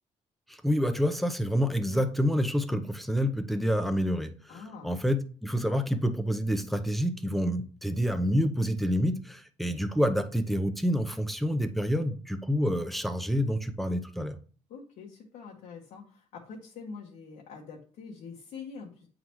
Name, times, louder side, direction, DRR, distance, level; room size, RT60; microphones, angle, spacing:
voice 1, 0.5-14.4, equal, ahead, 0.7 m, -28 dB
voice 2, 4.5-5.1 14.7-19.1, left 5 dB, 85° left, 1.3 m, -45 dB
8.4 x 3.9 x 3.1 m
cardioid pair, 110°, 13 cm